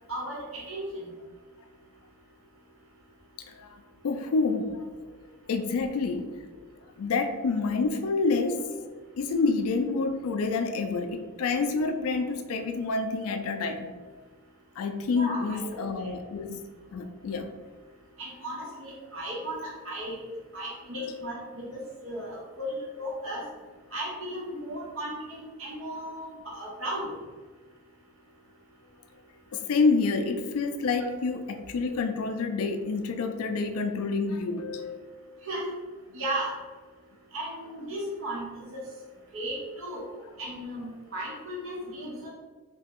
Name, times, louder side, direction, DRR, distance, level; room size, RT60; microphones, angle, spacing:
voice 1, 0.1-0.8 15.1-15.9 18.2-20.2 20.5-23.5 23.9-27.0 35.4-35.6 36.1-36.5 37.3-38.8 39.3-40.0 40.4-42.3, right 1 dB, 65° right, -5 dB, 1.1 m, -35 dB
voice 2, 3.5-4.9 5.5-6.3 7.0-8.9 9.2-13.9 14.8-16.6 16.9-17.5 20.9-21.3 29.5-35.0, left 4 dB, 75° left, 7 dB, 0.4 m, -28 dB
2.9 x 2.3 x 3.5 m, 1.4 s
head